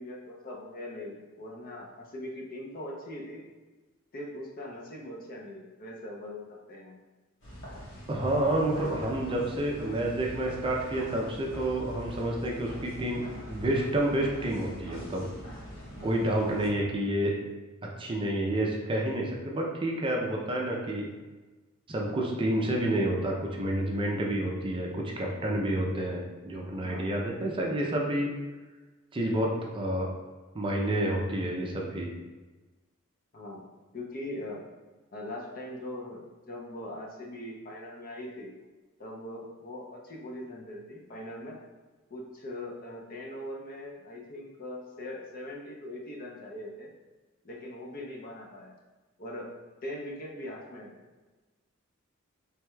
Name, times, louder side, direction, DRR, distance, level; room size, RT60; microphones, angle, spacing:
voice 1, 0.0-3.5 4.1-7.0 16.4-16.6 24.4-24.6 26.8-27.1 33.3-33.6 33.9-34.6 35.1-38.5 39.0-41.6 42.1-46.9 47.4-48.7 49.2-49.5 49.8-50.9, left 1 dB, 45° left, -1 dB, 0.7 m, -41 dB
sound 1, 7.4-16.7, equal, 65° left, 1.3 m, -42 dB
voice 2, 8.1-13.2 13.5-15.3 16.0-17.4 18.0-21.1 21.9-24.9 25.2-28.3 29.1-30.1 30.5-32.1, right 1 dB, 25° right, -1 dB, 0.5 m, -29 dB
4.6 x 3.4 x 2.3 m, 1.2 s
head